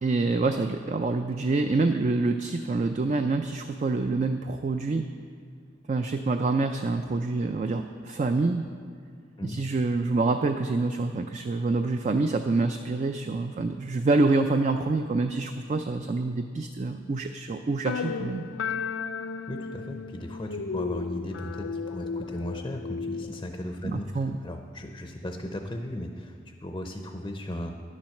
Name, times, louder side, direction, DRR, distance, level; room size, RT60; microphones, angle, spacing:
voice 1, 0.0-5.1 5.9-8.6 9.4-18.4 23.8-24.4, right 3 dB, 40° right, 7 dB, 0.4 m, -26 dB
sound 1, 17.8-23.4, left 5 dB, 80° left, 0.4 m, -34 dB
voice 2, 19.5-24.1 24.4-27.8, left 1 dB, 20° left, 4 dB, 0.5 m, -36 dB
10.5 x 7.3 x 6.4 m, 2.2 s
head